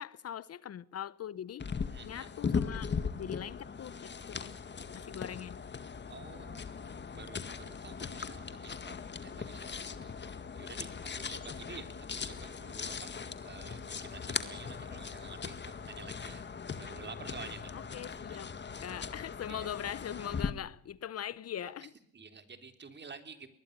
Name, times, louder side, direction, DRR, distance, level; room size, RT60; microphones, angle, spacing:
voice 1, 0.0-1.7 2.0-4.5 4.9-5.6 17.7-18.5 18.8-21.9, left 10 dB, 55° left, 0.8 m, -41 dB
sound 1, 1.6-20.5, left 5 dB, 35° left, 1.9 m, -39 dB
voice 2, 1.9-2.3 6.1-16.4 16.7-17.9 18.3-18.5 19.5-19.7 21.6-21.9 22.1-23.5, right 5 dB, 35° right, 3.6 m, -50 dB
22.5 x 20.5 x 6.8 m
cardioid pair, 90°, 30 cm